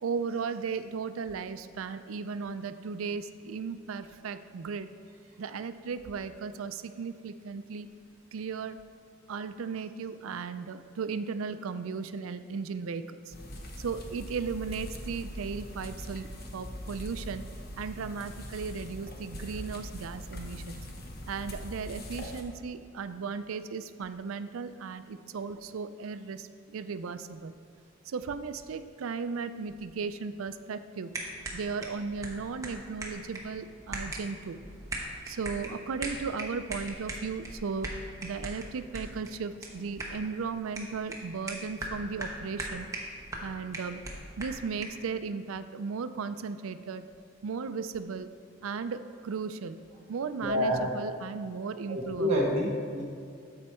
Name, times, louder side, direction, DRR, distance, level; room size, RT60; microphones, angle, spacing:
voice 1, 0.0-4.9 5.4-7.9 8.3-8.8 9.3-13.3 13.8-17.4 17.8-20.8 21.3-27.5 28.0-31.1 31.5-34.6 35.3-37.9 38.2-42.9 43.4-44.0 44.4-47.0 47.4-48.3 48.6-49.8 50.1-52.3, right 5 dB, 85° right, 12 dB, 0.4 m, -36 dB
sound 1, 13.3-22.4, left 1 dB, 50° left, 1.0 m, -42 dB
sound 2, 31.1-45.1, right 1 dB, 15° right, 1.0 m, -41 dB
voice 2, 50.4-50.8 51.9-53.0, equal, 30° right, -6 dB, 1.2 m, -27 dB
12.5 x 4.6 x 4.3 m, 2.4 s
head